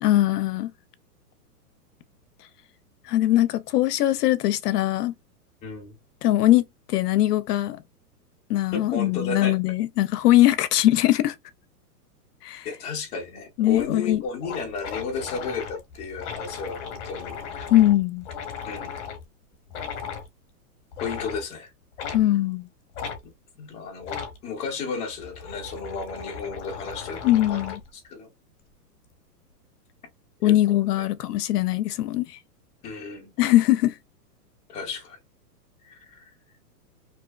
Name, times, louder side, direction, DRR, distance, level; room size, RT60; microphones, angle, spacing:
voice 1, 0.0-0.7 3.1-5.1 6.2-6.6 6.9-7.8 8.5-11.3 12.4-12.7 13.6-14.2 17.7-18.3 22.1-22.7 27.2-27.8 30.4-32.3 33.4-33.9, left 14 dB, 75° left, 0.5 m, -21 dB
voice 2, 5.6-5.9 8.7-9.6 12.6-17.7 18.7-18.9 21.0-21.7 23.6-27.6 27.9-28.3 30.4-30.5 31.0-31.1 32.8-33.3 34.7-35.2 35.8-36.2, left 5 dB, 15° left, 0.5 m, -33 dB
sound 1, 13.7-13.8 14.1-14.2 14.4-19.2 19.7-20.3 20.9-21.4 22.0-22.2 22.9-23.2 24.0-24.4 25.1-27.9, left 6 dB, 45° left, 0.9 m, -36 dB
2.7 x 2.0 x 2.2 m
hypercardioid pair, 135°, 47 cm